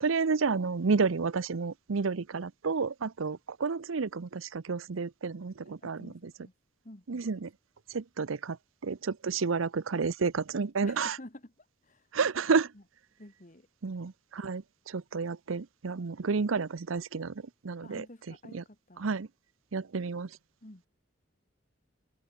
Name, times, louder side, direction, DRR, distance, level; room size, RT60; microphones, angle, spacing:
voice 1, 0.0-6.1 7.1-7.5 7.9-8.6 8.8-11.2 12.1-12.7 13.8-17.3 17.6-18.0 18.5-18.6 19.0-19.3 19.7-20.3, right 4 dB, 85° right, 0.7 m, -30 dB
voice 2, 5.7-6.5 6.8-7.2 10.8-12.1 12.7-12.8 13.2-13.7 17.8-19.1 20.6-20.9, left 1 dB, 40° left, 1.9 m, -50 dB
head